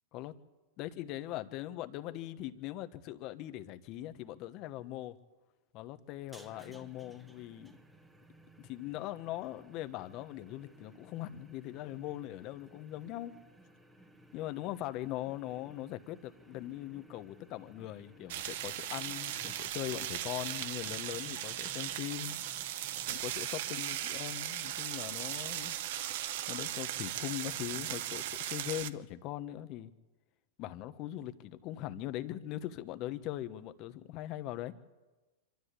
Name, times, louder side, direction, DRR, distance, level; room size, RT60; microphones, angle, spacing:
voice 1, 0.8-5.2 5.7-7.7 8.6-13.3 14.3-22.4 23.1-25.8 26.5-29.9 30.6-34.7, left 14 dB, 40° left, 11 dB, 1.2 m, -41 dB
sound 1, 6.2-25.6, right 1 dB, 5° right, 1.5 m, -58 dB
sound 2, 18.3-28.9, right 12 dB, 60° right, 0.9 m, -38 dB
25.0 x 13.0 x 8.3 m, 1.2 s
hypercardioid pair, 125°, 0 cm